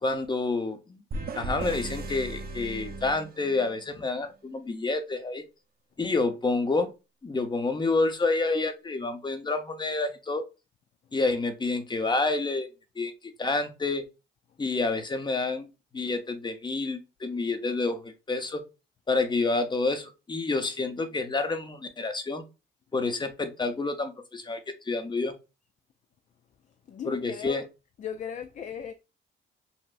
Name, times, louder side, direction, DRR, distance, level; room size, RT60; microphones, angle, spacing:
voice 1, 0.0-1.0 1.3-5.4 6.0-6.9 7.2-10.4 11.1-12.7 13.0-13.1 13.4-14.0 14.6-15.7 15.9-18.6 19.1-22.5 22.9-25.3 27.0-27.6, left 3 dB, 25° left, 0.8 m, -28 dB
sound 1, 1.1-3.9, right 2 dB, 50° right, 0.7 m, -36 dB
voice 2, 26.9-27.6 28.0-28.9, left 8 dB, 40° left, 0.4 m, -37 dB
5.7 x 2.0 x 2.5 m
cardioid pair, 90°, 20 cm